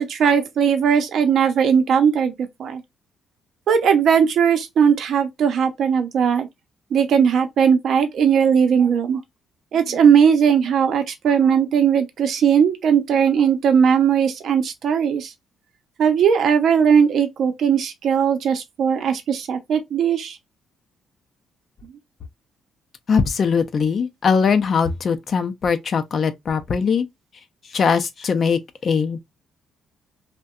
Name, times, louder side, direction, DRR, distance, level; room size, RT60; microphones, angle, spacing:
voice 1, 0.0-2.3 2.6-2.8 3.7-6.5 6.9-9.2 9.7-15.3 16.0-20.4, right 7 dB, 65° right, 0.6 m, -18 dB
voice 2, 23.1-27.1 27.7-29.2, left 6 dB, 50° left, 0.5 m, -21 dB
2.6 x 2.1 x 2.3 m
cardioid pair, 90°, 0 cm